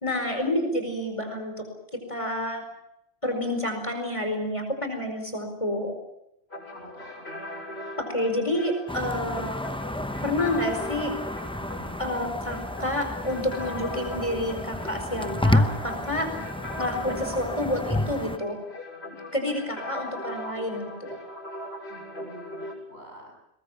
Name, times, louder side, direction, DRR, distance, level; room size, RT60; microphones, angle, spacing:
voice 1, 0.0-1.7 2.1-2.6 3.2-5.9 8.0-9.6 10.2-11.1 12.0-16.3 16.8-18.6 19.3-21.2, left 1 dB, 30° left, 5 dB, 4.8 m, -29 dB
sound 1, 6.5-22.7, left 1 dB, 65° left, 7.3 m, -39 dB
voice 2, 6.7-7.3 16.4-16.7 22.2-23.3, equal, 65° right, 1 dB, 7.9 m, -47 dB
sound 2, 8.9-18.4, left 1 dB, 5° left, 0.7 m, -30 dB
22.0 x 21.0 x 8.5 m, 0.82 s
omnidirectional pair, 1.1 m